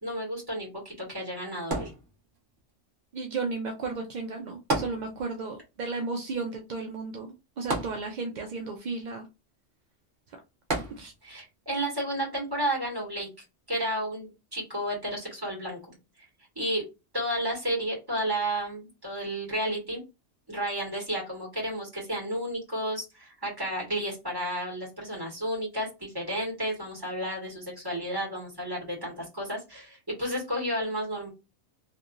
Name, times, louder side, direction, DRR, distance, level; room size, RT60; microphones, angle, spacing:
voice 1, 0.0-1.9 11.2-13.3 13.7-16.0 16.5-16.8 17.1-20.0 20.5-31.3, right 1 dB, 20° right, -2 dB, 1.6 m, -32 dB
sound 1, 1.7-2.6 4.7-5.6 5.8-5.9 7.7-8.5 10.7-11.4 12.1-12.2, right 2 dB, 45° right, 1.0 m, -32 dB
voice 2, 3.1-9.2 10.3-10.4 10.9-11.1, right 4 dB, 60° right, 3 dB, 0.4 m, -34 dB
2.9 x 2.5 x 2.4 m, 0.26 s
omnidirectional pair, 1.2 m